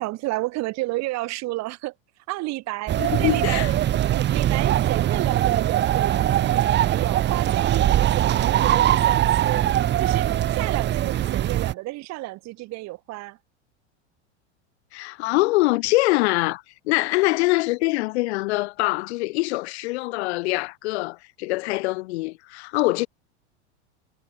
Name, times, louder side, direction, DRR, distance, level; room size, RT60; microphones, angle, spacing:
voice 1, 0.0-1.9 2.3-3.6 4.1-9.7 10.0-13.4, right 20 dB, 50° right, 5.5 m, -31 dB
sound 1, 2.9-11.7, right 12 dB, 30° right, 1.2 m, -21 dB
voice 2, 3.0-3.7 14.9-23.1, left 21 dB, 65° left, 5.9 m, -24 dB
hypercardioid pair, 110°, 35 cm